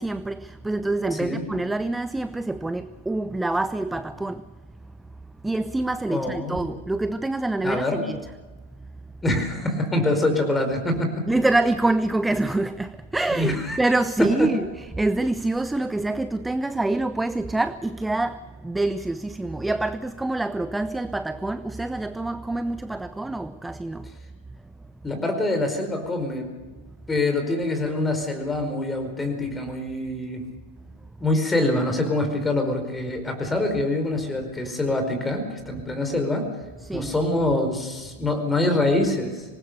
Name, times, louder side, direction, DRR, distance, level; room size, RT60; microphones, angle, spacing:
voice 1, 0.0-4.5 5.3-8.3 8.8-8.9 11.3-24.1 36.8-37.1, right 2 dB, 5° right, 0.6 m, -26 dB
voice 2, 6.1-6.8 7.6-8.0 9.2-11.3 13.3-13.8 14.4-14.5 25.0-26.5 27.1-30.4 31.2-36.4 36.9-39.4, left 2 dB, 10° left, 4.9 m, -25 dB
25.5 x 19.5 x 6.7 m
figure-of-eight pair, 90°, 0 cm